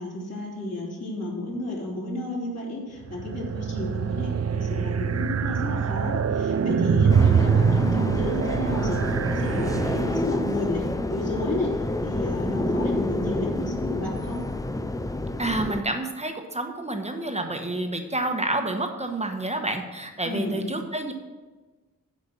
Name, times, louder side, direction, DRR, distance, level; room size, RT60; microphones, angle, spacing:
voice 1, 0.0-14.4 20.2-20.6, left 1 dB, 50° left, -4 dB, 3.0 m, -32 dB
sound 1, 3.0-10.5, right 6 dB, 50° right, 0.5 m, -24 dB
sound 2, 7.1-15.8, left 2 dB, 10° left, 0.4 m, -29 dB
voice 2, 15.4-21.1, right 2 dB, 20° right, 4 dB, 1.1 m, -29 dB
8.2 x 5.2 x 7.4 m, 1.2 s
wide cardioid pair, 85°, 34 cm